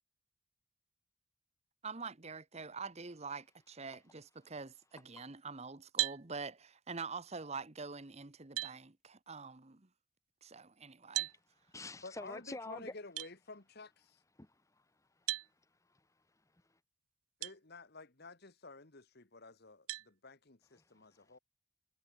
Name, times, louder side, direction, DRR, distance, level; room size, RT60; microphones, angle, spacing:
voice 1, 1.8-9.9 10.4-11.3, right 4 dB, 30° right, 1.1 m, -45 dB
sound 1, 6.0-6.2 7.9-8.0 8.6-8.8 11.1-11.4 13.2-13.3 15.3-15.5 17.4-17.6 18.2-18.3 19.9-20.1, right 20 dB, 90° right, 0.4 m, -35 dB
voice 2, 11.3-12.9 14.4-16.8 20.8-21.4, left 2 dB, 15° left, 1.1 m, -50 dB
voice 3, 12.0-14.2 17.4-21.4, left 3 dB, 50° left, 1.7 m, -52 dB
head